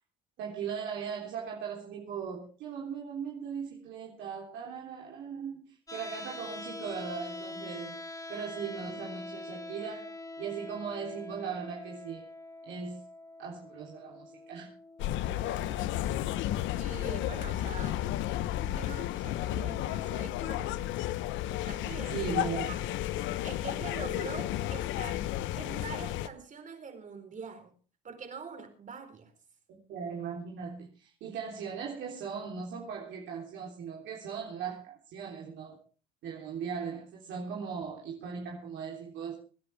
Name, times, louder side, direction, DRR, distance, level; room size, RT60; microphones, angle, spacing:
voice 1, 0.4-8.0 8.3-12.3 12.6-13.0 13.4-14.7 22.1-22.7 29.7-35.8 36.2-39.4, right 6 dB, 70° right, 3.6 m, -38 dB
sound 1, 5.9-17.9, left 2 dB, 15° left, 1.7 m, -45 dB
sound 2, 15.0-26.3, left 13 dB, 70° left, 0.9 m, -32 dB
voice 2, 15.3-16.1 16.8-18.0 18.7-20.9 21.6-22.2 22.7-22.9 23.4-25.3 25.6-27.7 28.0-29.3, right 5 dB, 40° right, 4.3 m, -44 dB
25.5 x 10.5 x 3.5 m
supercardioid pair, 85°, 20 cm